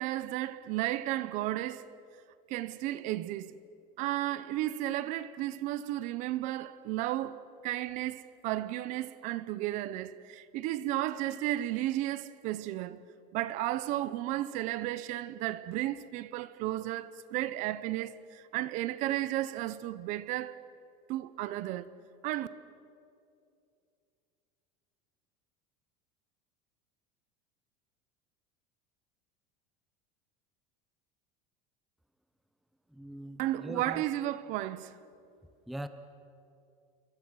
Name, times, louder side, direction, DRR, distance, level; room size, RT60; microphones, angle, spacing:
voice 1, 0.0-1.9 2.5-3.5 4.0-7.4 7.6-13.0 13.3-20.6 21.1-21.9 22.2-22.5 33.4-35.0, right 14 dB, 40° right, 0.7 m, -33 dB
voice 2, 32.9-34.0 35.7-35.9, right 1 dB, ahead, 0.6 m, -41 dB
29.0 x 23.0 x 6.3 m
cardioid pair, 175°, 19 cm